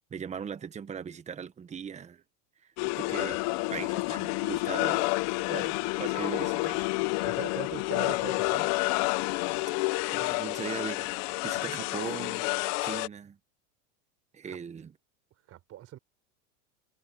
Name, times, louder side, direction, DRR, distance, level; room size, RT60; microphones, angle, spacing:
voice 1, 0.1-2.2 3.0-5.1 5.5-6.9 10.1-11.1 11.4-12.5 12.8-13.4 14.3-14.9, right 7 dB, 15° right, 1.1 m, -39 dB
sound 1, 2.8-13.1, left 25 dB, 40° left, 0.5 m, -29 dB
voice 2, 7.2-8.7 14.4-14.6 15.5-16.0, right 13 dB, 35° right, 4.3 m, -41 dB
supercardioid pair, 145°, 42 cm